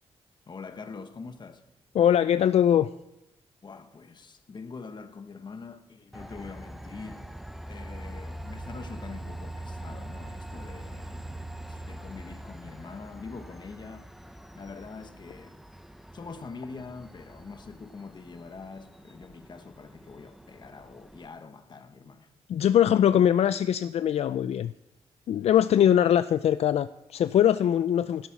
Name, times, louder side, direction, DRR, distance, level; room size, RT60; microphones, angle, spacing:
voice 1, 0.5-1.6 3.6-7.3 7.7-14.1 14.5-15.6 16.1-22.3, left 4 dB, 45° left, 1.2 m, -44 dB
voice 2, 1.9-2.9 22.5-24.7 25.3-28.3, left 10 dB, 70° left, 0.4 m, -22 dB
Train, 6.1-21.3, right 1 dB, ahead, 0.7 m, -43 dB
16.0 x 8.1 x 6.0 m
cardioid pair, 95°, 11 cm